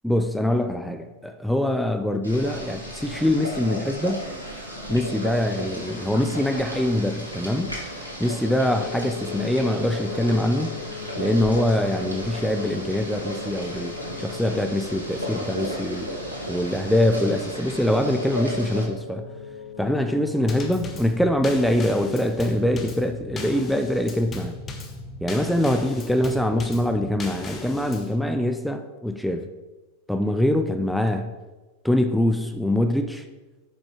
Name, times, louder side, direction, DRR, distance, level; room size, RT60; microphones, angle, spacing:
voice 1, 0.0-4.3 4.9-7.7 8.2-10.7 11.2-16.1 16.5-19.3 19.8-24.6 25.2-29.5 30.1-31.3 31.8-33.2, left 1 dB, ahead, 7 dB, 0.4 m, -24 dB
Boiling, 2.2-18.8, equal, 85° right, 2.0 m, -34 dB
sound 1, 8.6-20.7, left 7 dB, 80° left, 0.9 m, -40 dB
Drum kit / Snare drum / Bass drum, 20.5-28.2, left 3 dB, 25° left, 1.0 m, -37 dB
6.6 x 5.2 x 4.7 m, 1.2 s
figure-of-eight pair, 90°, 0 cm